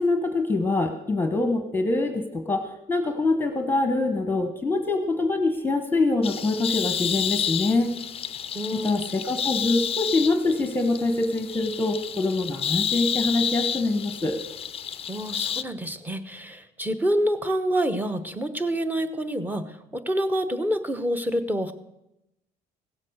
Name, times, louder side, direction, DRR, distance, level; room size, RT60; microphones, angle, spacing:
voice 1, 0.0-7.9 8.8-14.4, left 2 dB, 10° left, 7 dB, 1.1 m, -24 dB
sound 1, 6.2-15.6, left 8 dB, 35° left, 0.5 m, -30 dB
voice 2, 8.5-9.1 15.1-21.7, equal, 10° right, 9 dB, 1.0 m, -27 dB
16.5 x 7.5 x 6.5 m, 0.89 s
cardioid pair, 110°, 17 cm